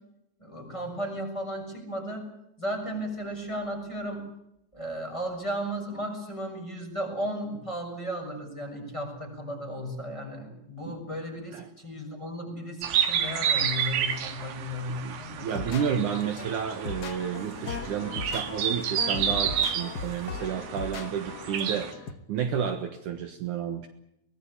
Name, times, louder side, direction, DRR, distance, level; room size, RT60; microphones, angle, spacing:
voice 1, 0.4-2.2 2.6-4.2 4.7-15.5, equal, 10° left, 2 dB, 6.7 m, -35 dB
sound 1, 12.8-21.9, right 8 dB, 85° right, 3.8 m, -30 dB
voice 2, 14.9-23.9, right 8 dB, 65° right, 7 dB, 2.7 m, -31 dB
sound 2, 15.5-22.1, left 5 dB, 70° left, 0.9 m, -38 dB
24.0 x 19.5 x 8.7 m, 0.82 s
omnidirectional pair, 4.1 m